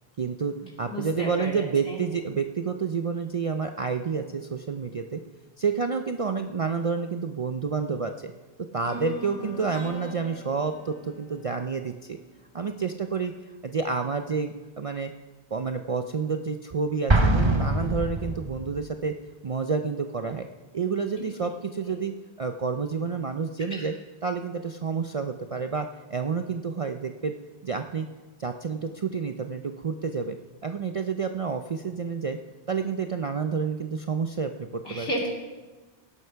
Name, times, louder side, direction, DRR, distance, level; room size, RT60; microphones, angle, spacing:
voice 1, 0.2-5.2 5.6-8.3 8.7-12.2 12.5-15.1 15.5-19.1 19.4-20.5 20.7-22.1 22.4-23.9 24.2-27.3 27.6-28.1 28.4-30.4 30.6-32.4 32.7-35.1, right 5 dB, 45° right, 6 dB, 0.4 m, -29 dB
voice 2, 0.9-2.0 21.2-21.3 23.7-23.9 34.8-35.3, equal, 65° left, -2 dB, 3.2 m, -33 dB
sound 1, 8.8-12.8, right 2 dB, 50° left, 2.0 m, -42 dB
Explosion, 17.1-18.8, right 2 dB, 25° right, 1.1 m, -23 dB
17.0 x 7.9 x 5.7 m, 1.2 s
omnidirectional pair, 1.1 m